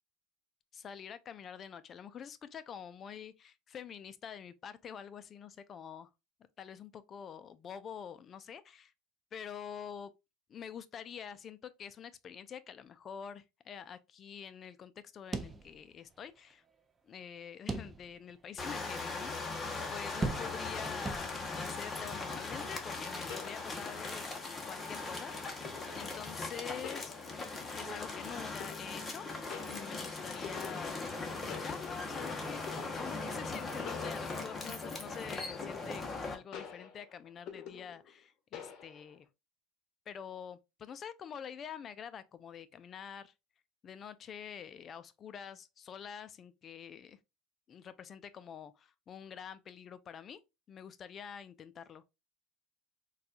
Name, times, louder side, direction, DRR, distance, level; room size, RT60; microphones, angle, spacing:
voice 1, 0.7-6.1 6.6-8.9 9.3-10.1 10.5-16.6 17.0-19.7 19.9-25.6 25.9-27.1 27.7-29.3 29.7-39.3 40.1-43.3 43.8-47.2 47.7-50.4 50.7-52.0, left 8 dB, 35° left, 0.4 m, -46 dB
sound 1, 15.3-16.2 16.5-16.6 17.7-18.3 18.8-18.9 20.2-20.8 21.1-21.7, right 3 dB, 20° right, 0.5 m, -38 dB
sound 2, 18.6-36.3, left 3 dB, 20° left, 0.9 m, -39 dB
sound 3, 23.3-24.2 25.6-26.1 26.8-27.7 28.6-29.2 29.5-31.2 31.5-32.2 32.7-33.1 33.9-34.8 35.6-36.2 36.5-38.2 38.5-39.2, left 7 dB, 55° left, 0.8 m, -48 dB
4.1 x 2.3 x 2.5 m
supercardioid pair, 110°, 0 cm